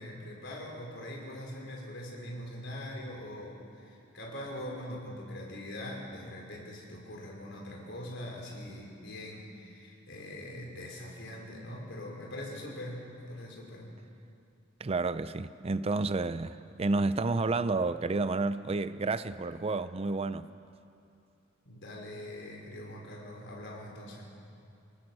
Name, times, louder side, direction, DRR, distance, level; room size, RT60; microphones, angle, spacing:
voice 1, 0.0-13.9 21.6-24.3, left 1 dB, 65° left, 5.0 m, -42 dB
voice 2, 14.8-20.5, right 3 dB, 30° right, 0.5 m, -30 dB
27.0 x 19.5 x 6.3 m
head